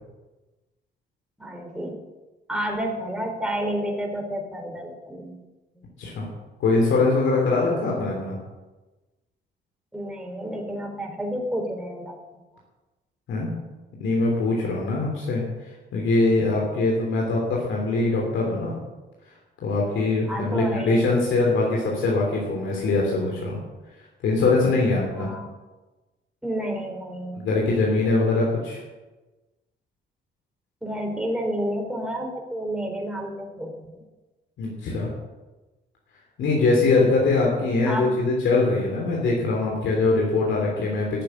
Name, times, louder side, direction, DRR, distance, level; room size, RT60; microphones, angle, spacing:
voice 1, 1.4-2.0 2.5-5.4 5.8-5.9 9.9-12.2 20.3-21.1 25.2-25.5 26.4-27.5 30.8-33.9 37.9-38.1, equal, 5° right, 1 dB, 3.8 m, -30 dB
voice 2, 6.6-8.4 13.3-13.5 14.0-15.4 15.9-18.8 19.6-23.6 24.2-25.3 27.4-28.8 34.6-35.1 36.4-41.2, left 3 dB, 80° left, -2 dB, 3.3 m, -22 dB
13.5 x 6.9 x 9.2 m, 1.2 s
cardioid pair, 90°, 20 cm